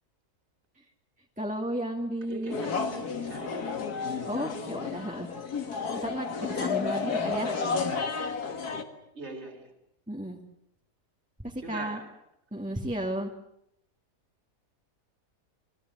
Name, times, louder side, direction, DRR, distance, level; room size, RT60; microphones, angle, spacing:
voice 1, 1.4-2.6 4.3-5.3 6.0-7.6 10.1-10.4 11.4-12.0 12.5-13.3, right 1 dB, 5° right, 2.3 m, -33 dB
voice 2, 2.3-3.8 6.8-7.3 9.1-9.7 11.6-12.1, right 2 dB, 40° right, 4.1 m, -42 dB
sound 1, 2.5-8.8, left 5 dB, 70° left, 2.5 m, -31 dB
27.5 x 22.0 x 8.0 m
omnidirectional pair, 1.7 m